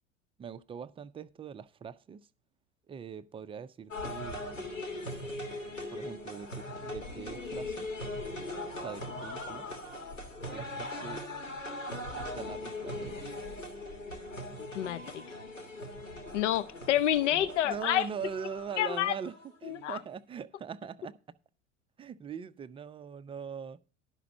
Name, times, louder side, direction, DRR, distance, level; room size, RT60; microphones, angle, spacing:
voice 1, 0.4-2.3 2.9-4.7 5.9-7.9 8.8-9.7 10.4-11.2 12.2-13.3 17.3-19.3 19.6-21.2 22.0-23.8, right 7 dB, 15° right, 0.4 m, -42 dB
sound 1, 3.9-20.0, left 1 dB, 85° left, 1.6 m, -40 dB
voice 2, 14.6-15.2 16.3-18.1 18.8-19.1 19.6-20.0, left 12 dB, 70° left, 0.6 m, -28 dB
11.5 x 5.9 x 6.3 m
figure-of-eight pair, 70°, 37 cm